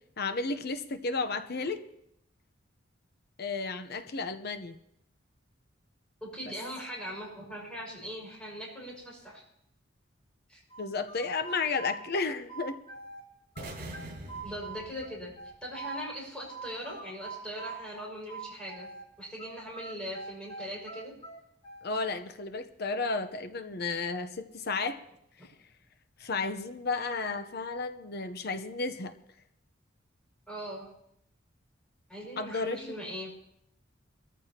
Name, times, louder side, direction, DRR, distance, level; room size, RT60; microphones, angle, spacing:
voice 1, 0.2-1.8 3.4-4.8 6.5-6.6 10.8-12.8 21.8-25.0 26.2-29.1 32.4-33.0, left 4 dB, 55° left, 10 dB, 0.9 m, -33 dB
voice 2, 6.2-9.4 10.5-10.6 14.4-15.3 15.6-18.9 19.2-21.1 30.5-30.9 32.1-33.3, equal, 5° left, -5 dB, 5.8 m, -40 dB
sound 1, 10.7-13.2 13.5-16.1 16.5-19.1 19.4-22.0, right 3 dB, 30° left, 3.0 m, -43 dB
sound 2, 13.6-15.7, right 1 dB, 55° right, 6.9 m, -44 dB
22.0 x 14.0 x 2.9 m, 0.76 s
head